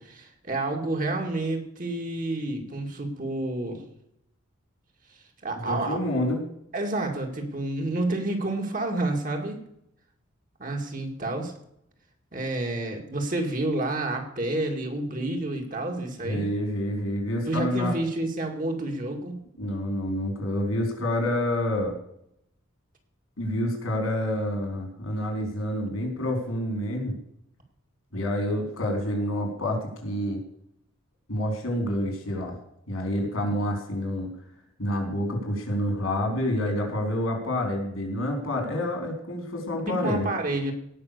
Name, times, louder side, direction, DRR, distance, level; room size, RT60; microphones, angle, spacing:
voice 1, 0.0-3.8 5.4-6.0 6.7-9.6 10.6-11.5 12.3-16.5 17.5-19.4 40.0-40.7, right 2 dB, 40° right, 3 dB, 2.2 m, -29 dB
voice 2, 5.6-6.4 16.2-17.9 19.6-22.0 23.4-27.1 28.1-30.4 31.3-32.6 32.9-34.3 34.8-40.3, left 1 dB, 85° left, 3 dB, 3.9 m, -28 dB
17.5 x 6.0 x 6.7 m, 0.76 s
head